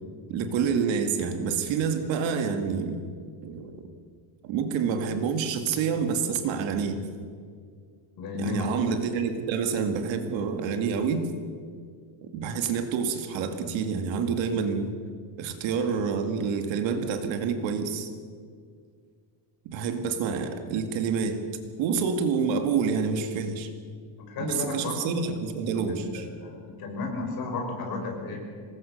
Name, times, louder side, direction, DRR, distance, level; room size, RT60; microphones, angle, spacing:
voice 1, 0.3-3.0 3.4-3.9 4.4-7.0 8.3-11.2 12.3-14.9 15.4-18.1 19.7-21.4 21.8-23.7 24.4-26.3, right 6 dB, 65° right, 7 dB, 2.2 m, -28 dB
voice 2, 8.2-8.8 24.3-25.0 25.9-28.4, left 3 dB, 45° left, 1 dB, 5.6 m, -33 dB
25.5 x 20.0 x 6.6 m, 2.1 s
cardioid pair, 180°, 49 cm